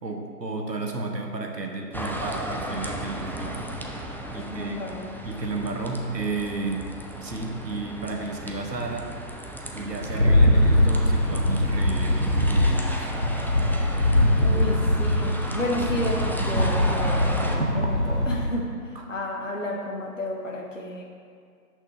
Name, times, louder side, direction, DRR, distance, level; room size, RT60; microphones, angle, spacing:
voice 1, 0.0-3.7 4.3-4.8 5.2-6.9 7.2-9.1 9.7-13.1 18.9-19.0, right 3 dB, 85° right, 3 dB, 1.0 m, -32 dB
sound 1, 1.9-17.6, equal, 5° left, 0.4 m, -35 dB
voice 2, 4.3-5.2 14.4-21.0, left 1 dB, 50° left, -1 dB, 0.6 m, -31 dB
Rattle, 10.0-18.5, left 1 dB, 45° right, 0.5 m, -22 dB
6.1 x 5.8 x 3.3 m, 2.2 s
figure-of-eight pair, 180°, 49 cm